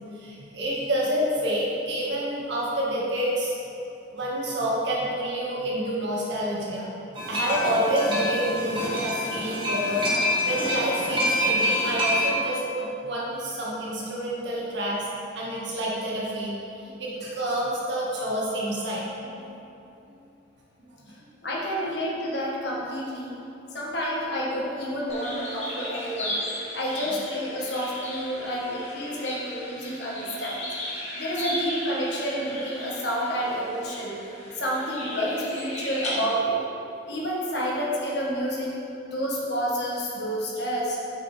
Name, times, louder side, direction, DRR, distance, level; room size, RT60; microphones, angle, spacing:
voice 1, 0.1-3.5 4.1-6.9 7.3-15.1 15.4-16.5 16.8-19.3 20.1-20.2 20.9-21.0, right 1 dB, 60° right, -5 dB, 2.0 m, -28 dB
sound 1, 7.2-12.3, left 1 dB, 25° right, 1.7 m, -26 dB
voice 2, 21.4-23.4 23.7-30.7 31.1-34.2 34.5-36.6 37.1-38.8 39.0-41.0, equal, 55° left, -4 dB, 1.6 m, -29 dB
sound 2, 25.1-36.1, left 1 dB, 35° left, 1.6 m, -36 dB
9.2 x 7.6 x 3.5 m, 2.8 s
head